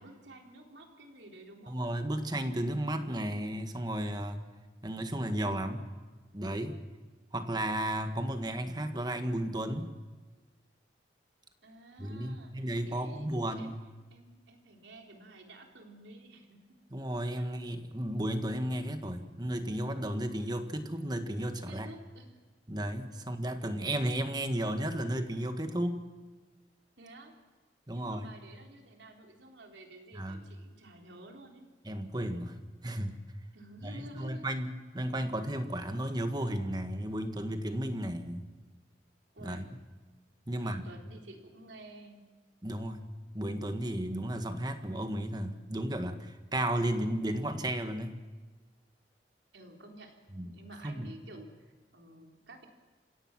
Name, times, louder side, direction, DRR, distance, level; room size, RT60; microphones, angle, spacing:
voice 1, 0.0-1.8 11.6-13.7 14.1-16.8 17.4-17.5 21.7-22.4 27.0-27.3 27.9-31.7 33.5-34.5 39.3-39.7 40.5-42.3 49.5-50.2 50.4-52.7, right 1 dB, 80° right, 2 dB, 3.7 m, -51 dB
voice 2, 1.7-4.4 4.8-5.9 6.3-6.8 7.3-9.9 12.0-13.8 16.9-21.9 22.7-26.0 27.9-28.3 30.1-30.4 31.8-32.6 32.8-33.2 33.8-38.5 39.4-39.6 40.5-40.8 42.6-43.1 43.3-48.2 50.3-50.5 50.8-51.1, right 1 dB, 25° right, 7 dB, 1.6 m, -34 dB
29.0 x 17.0 x 6.1 m, 1.3 s
head